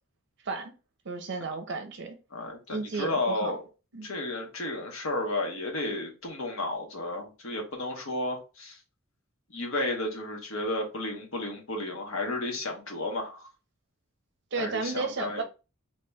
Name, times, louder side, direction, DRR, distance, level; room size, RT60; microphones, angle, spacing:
voice 1, 1.1-2.2 2.7-3.6 3.9-4.2 14.5-15.4, right 4 dB, 55° right, 0.6 m, -33 dB
voice 2, 2.3-3.6 4.0-8.8 9.5-13.4 14.6-15.4, left 2 dB, 70° left, 1.1 m, -32 dB
2.9 x 2.9 x 3.3 m
head